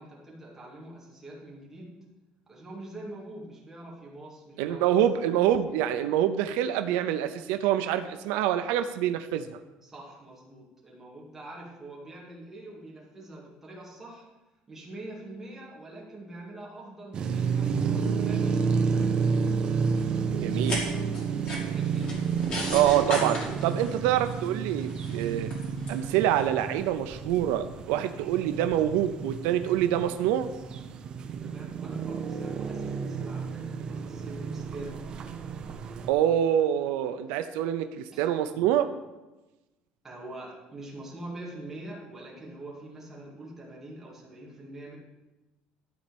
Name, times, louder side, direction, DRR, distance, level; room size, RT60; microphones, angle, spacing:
voice 1, 0.0-2.0 2.5-4.9 5.1-5.4 9.8-14.3 14.7-19.4 21.6-22.1 31.4-35.0 38.1-38.2 40.0-45.0, right 1 dB, 10° right, -4 dB, 2.1 m, -44 dB
voice 2, 4.6-9.5 20.3-20.8 22.7-25.5 25.9-30.5 36.1-38.9, right 11 dB, 85° right, 9 dB, 0.6 m, -26 dB
sound 1, 17.1-36.1, right 5 dB, 30° right, 0.6 m, -31 dB
sound 2, 20.5-26.5, left 1 dB, 30° left, 2.6 m, -37 dB
12.5 x 4.3 x 7.0 m, 1.1 s
cardioid pair, 175°, 3 cm